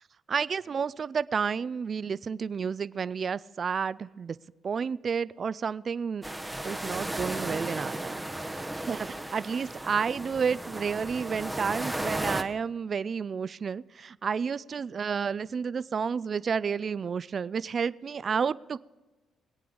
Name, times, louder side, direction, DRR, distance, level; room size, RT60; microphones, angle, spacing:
voice 1, 0.3-4.4 4.6-6.2 6.6-8.2 8.5-18.8, right 6 dB, 45° right, 18 dB, 0.3 m, -31 dB
sound 1, 6.2-12.4, right 1 dB, 5° right, 0.8 m, -35 dB
22.5 x 8.6 x 3.9 m, 1.1 s
cardioid pair, 90°, 0 cm